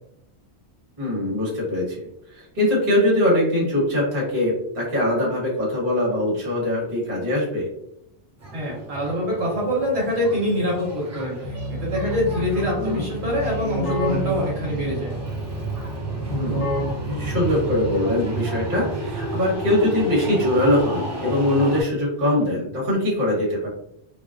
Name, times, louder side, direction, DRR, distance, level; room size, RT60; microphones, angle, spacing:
voice 1, 1.0-2.0 2.3-7.6 12.8-13.0 16.3-16.6 17.0-23.7, left 1 dB, 50° right, -5 dB, 1.2 m, -22 dB
sound 1, 8.4-21.8, right 2 dB, 25° right, 0.3 m, -32 dB
voice 2, 8.5-15.1, left 1 dB, 70° right, -5 dB, 1.1 m, -25 dB
Keyboard (musical), 11.4-18.3, equal, 50° left, 1.0 m, -30 dB
2.5 x 2.2 x 2.3 m, 0.76 s
omnidirectional pair, 1.2 m